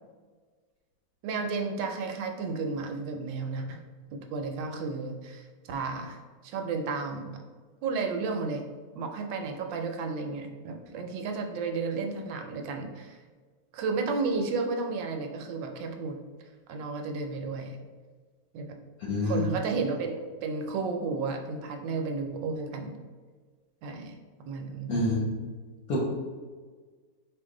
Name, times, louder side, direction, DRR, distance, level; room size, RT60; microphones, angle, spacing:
voice 1, 1.2-3.8 4.1-7.4 7.8-8.6 8.9-13.2 13.7-16.2 16.7-17.8 18.5-18.8 19.2-23.0 23.8-24.2 24.5-24.9, right 4 dB, 80° right, 4 dB, 1.3 m, -32 dB
voice 2, 19.0-19.5 24.9-25.3 25.9-26.0, left 2 dB, 65° left, -4 dB, 1.0 m, -27 dB
4.6 x 2.6 x 3.7 m, 1.5 s
omnidirectional pair, 2.0 m